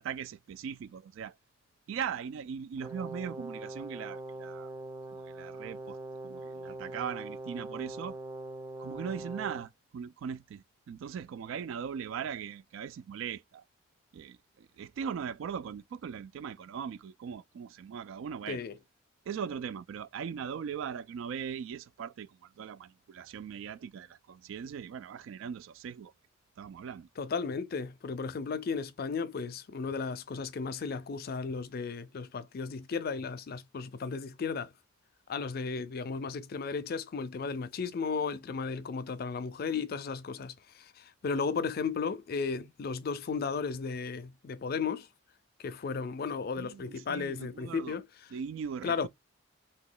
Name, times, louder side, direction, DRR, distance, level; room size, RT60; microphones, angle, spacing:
voice 1, 0.0-1.3 1.9-4.7 5.1-6.0 6.2-8.2 8.8-13.6 14.1-18.6 19.3-26.1 26.6-27.1 46.6-48.0 48.3-49.1, right 7 dB, 75° right, 0.3 m, -39 dB
Brass instrument, 2.8-9.7, right 2 dB, 15° right, 0.6 m, -42 dB
voice 2, 27.2-34.7 35.3-45.1 45.6-48.1 48.8-49.1, left 5 dB, 50° left, 0.4 m, -34 dB
2.9 x 2.2 x 3.8 m
head